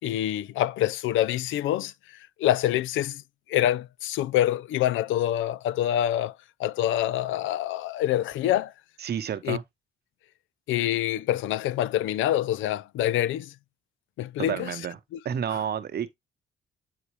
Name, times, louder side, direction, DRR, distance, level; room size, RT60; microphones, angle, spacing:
voice 1, 0.0-1.9 2.4-3.2 3.5-6.3 6.6-8.7 9.4-9.6 10.7-13.5 14.2-14.7, left 12 dB, 80° left, 0.4 m, -26 dB
voice 2, 9.0-9.6 14.4-15.0 15.2-16.2, right 8 dB, 55° right, 0.9 m, -30 dB
8.4 x 4.2 x 3.1 m
cardioid pair, 90°, 20 cm